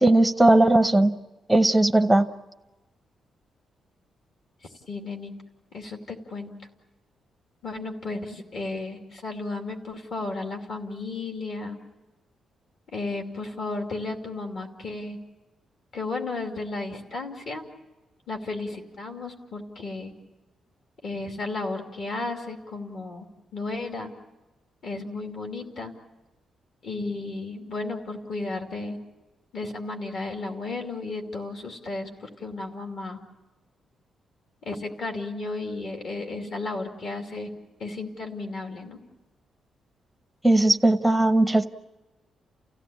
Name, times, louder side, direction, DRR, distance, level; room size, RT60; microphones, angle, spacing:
voice 1, 0.0-1.1 1.5-2.3 40.4-41.7, right 1 dB, ahead, 7 dB, 0.7 m, -18 dB
voice 2, 4.9-5.3 5.7-6.5 7.6-11.8 12.9-15.2 15.9-17.6 18.3-20.1 21.0-23.3 23.5-24.1 24.8-25.9 26.8-29.0 29.5-33.2 34.6-37.5 37.8-39.0, left 3 dB, 50° left, 3 dB, 2.6 m, -33 dB
30.0 x 16.0 x 8.7 m, 1.1 s
wide cardioid pair, 175°, 0 cm